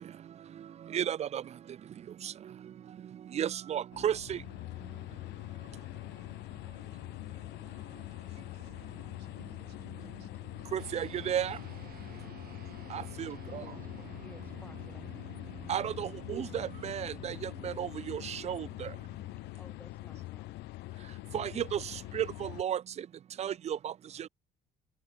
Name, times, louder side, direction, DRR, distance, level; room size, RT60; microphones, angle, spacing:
voice 1, 0.9-1.4 2.2-2.3 3.3-4.4 10.7-11.6 12.9-13.6 15.7-18.9 21.3-23.1 23.4-23.9 24.2-24.3, right 9 dB, 40° right, 0.5 m, -34 dB
sound 1, 3.9-22.6, left 19 dB, 85° left, 1.2 m, -44 dB
voice 2, 5.6-6.2 8.1-11.0, right 16 dB, 80° right, 4.1 m, -67 dB
sound 2, 10.8-20.4, right 12 dB, 60° right, 3.5 m, -52 dB
voice 3, 13.3-15.4 19.4-20.7, left 2 dB, 10° left, 1.7 m, -57 dB
cardioid pair, 110°, 17 cm